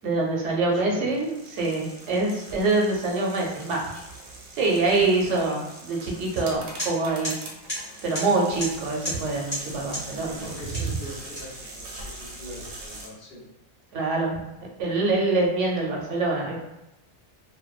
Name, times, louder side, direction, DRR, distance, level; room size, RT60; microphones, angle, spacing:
voice 1, 0.0-3.8 4.6-7.3 8.0-10.4 13.9-14.4 14.8-16.6, right 3 dB, 85° right, -1 dB, 0.9 m, -25 dB
voice 2, 0.5-1.1 5.2-5.5 10.2-13.4, left 1 dB, 60° left, -6 dB, 1.0 m, -41 dB
sound 1, 1.1-13.1, right 2 dB, 65° right, 0.7 m, -42 dB
sound 2, 6.3-6.5 6.8-6.9 7.2-7.4 7.7-7.8 8.1-8.3 8.6-8.7 9.0-9.2 9.5-9.6 9.9-10.0 10.7-10.9 11.4-12.4, equal, 25° left, 1.0 m, -31 dB
2.5 x 2.1 x 2.3 m, 0.91 s
omnidirectional pair, 1.2 m